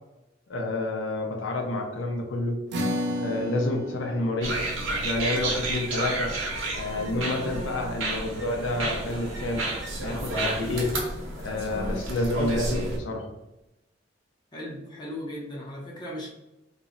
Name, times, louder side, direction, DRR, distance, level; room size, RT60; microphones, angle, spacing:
voice 1, 0.5-2.6 3.2-4.6 4.9-6.3 6.7-9.7 10.0-10.9 11.4-13.3, left 2 dB, 75° left, 1 dB, 0.5 m, -29 dB
sound 1, 2.7-9.3, left 1 dB, 60° right, 0.4 m, -36 dB
sound 2, 4.4-13.0, right 1 dB, 85° right, 0.8 m, -31 dB
voice 2, 14.5-16.3, equal, 25° left, -4 dB, 0.7 m, -37 dB
2.3 x 2.0 x 3.7 m, 0.95 s
head